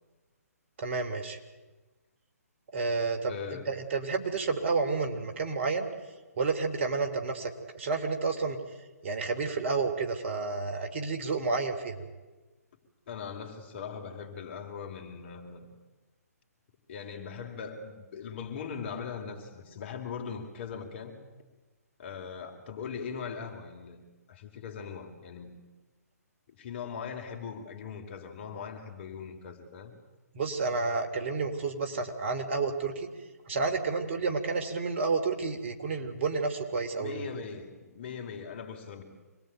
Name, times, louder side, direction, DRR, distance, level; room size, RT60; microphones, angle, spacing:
voice 1, 0.8-1.4 2.7-5.9 6.4-8.6 9.0-11.9 30.3-33.1 33.5-37.3, right 4 dB, 45° right, 5 dB, 3.3 m, -30 dB
voice 2, 3.3-3.7 13.1-15.7 16.9-21.2 22.0-24.0 24.3-25.5 26.5-29.9 37.0-39.0, left 6 dB, 40° left, 5 dB, 4.1 m, -40 dB
26.0 x 21.0 x 9.2 m, 1.2 s
figure-of-eight pair, 135°, 9 cm